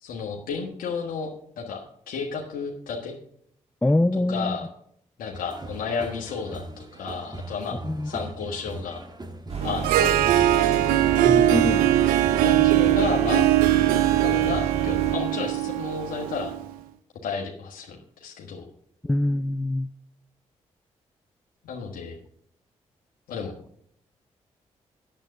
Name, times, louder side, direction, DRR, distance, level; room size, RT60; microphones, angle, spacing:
voice 1, 0.0-1.3 1.6-3.1 4.3-4.7 5.2-7.8 8.0-9.0 9.6-10.6 10.9-11.0 12.4-13.4 14.2-16.5 17.2-18.7 21.6-22.2 23.3-23.5, left 5 dB, 80° left, 0 dB, 1.4 m, -32 dB
voice 2, 3.8-4.6 7.8-8.1 11.2-11.9 19.0-19.9, left 1 dB, 10° left, 14 dB, 0.4 m, -24 dB
sound 1, 5.3-15.1, right 2 dB, 30° right, 1.9 m, -40 dB
sound 2, 9.5-15.1, right 5 dB, 50° right, 2.6 m, -31 dB
Harp, 9.6-16.7, right 13 dB, 90° right, 0.5 m, -21 dB
8.9 x 7.9 x 6.6 m, 0.67 s
hypercardioid pair, 40°, 14 cm